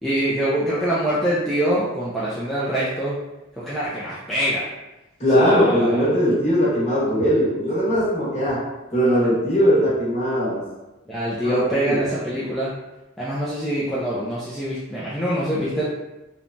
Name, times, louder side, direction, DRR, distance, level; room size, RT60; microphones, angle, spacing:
voice 1, 0.0-3.2 3.6-4.7 5.3-6.1 11.1-12.7 13.2-15.8, right 1 dB, ahead, -9 dB, 0.3 m, -24 dB
voice 2, 5.2-10.7 11.4-12.0, equal, 35° left, -8 dB, 1.0 m, -20 dB
3.0 x 2.1 x 2.5 m, 1.0 s
head